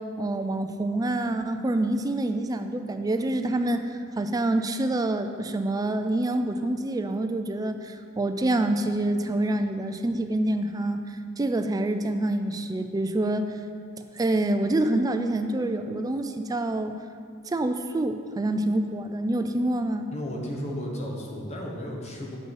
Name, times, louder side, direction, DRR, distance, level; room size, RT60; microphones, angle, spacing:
voice 1, 0.0-3.9 4.2-11.0 11.4-13.6 14.2-17.0 17.5-20.1, right 1 dB, 15° right, 8 dB, 0.3 m, -26 dB
voice 2, 20.1-22.4, equal, 30° left, -1 dB, 1.0 m, -34 dB
7.3 x 5.5 x 4.7 m, 2.2 s
head